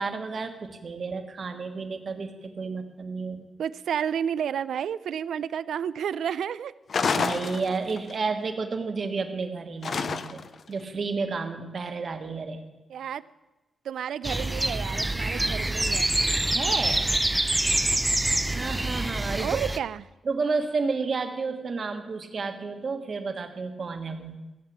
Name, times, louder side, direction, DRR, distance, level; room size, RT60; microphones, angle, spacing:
voice 1, 0.0-3.5 7.1-10.4 10.7-12.6 16.5-17.1 18.5-19.7 20.2-24.4, right 4 dB, 40° right, 6 dB, 1.4 m, -31 dB
voice 2, 3.6-6.7 12.9-13.2 13.8-16.2 19.4-20.0, right 8 dB, 90° right, 16 dB, 0.4 m, -31 dB
sound 1, 6.9-8.1 9.8-10.6, left 5 dB, 45° left, 0.6 m, -28 dB
sound 2, 14.2-19.8, right 1 dB, 10° right, 0.4 m, -26 dB
16.0 x 7.5 x 8.6 m, 1.1 s
wide cardioid pair, 170°, 0 cm